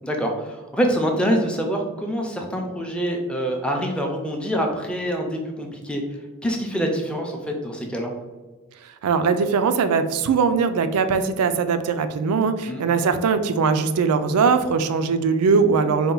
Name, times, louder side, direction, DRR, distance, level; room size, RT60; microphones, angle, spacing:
voice 1, 0.0-6.0 6.4-8.1 12.7-12.8, equal, 5° left, 1 dB, 0.4 m, -25 dB
voice 2, 9.0-16.1, right 5 dB, 90° right, 10 dB, 0.4 m, -20 dB
4.3 x 2.2 x 3.8 m, 1.3 s
head